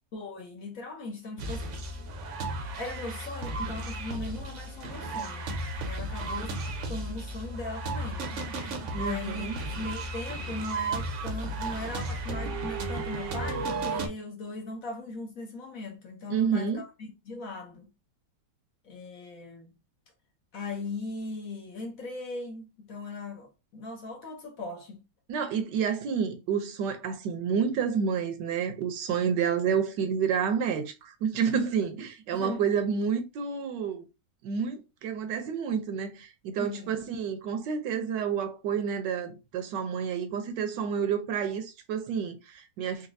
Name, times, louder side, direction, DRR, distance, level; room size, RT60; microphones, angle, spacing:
voice 1, 0.1-1.6 2.8-5.5 5.9-6.6 6.9-8.3 8.9-17.9 18.8-19.7 20.5-25.0 31.5-31.7 32.3-32.6 36.6-36.9, left 2 dB, 60° left, 1.1 m, -39 dB
sound 1, 1.4-14.1, right 2 dB, 60° right, 0.8 m, -34 dB
voice 2, 8.9-9.6 16.3-16.8 25.3-34.1 34.4-43.1, right 7 dB, 75° right, 1.2 m, -29 dB
4.1 x 2.3 x 2.6 m
omnidirectional pair, 1.9 m